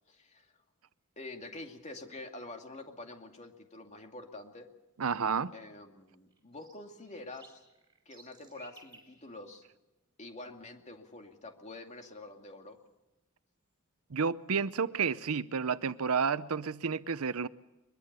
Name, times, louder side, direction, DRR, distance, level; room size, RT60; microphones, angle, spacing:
voice 1, 0.1-0.5 1.2-4.7 5.5-7.6 8.1-9.6 10.2-12.8, left 2 dB, 35° left, 2.5 m, -47 dB
sound 1, 0.6-16.0, right 2 dB, 20° right, 6.1 m, -65 dB
voice 2, 5.0-5.5 14.1-17.5, right 6 dB, 75° right, 0.7 m, -31 dB
22.5 x 22.5 x 6.9 m
head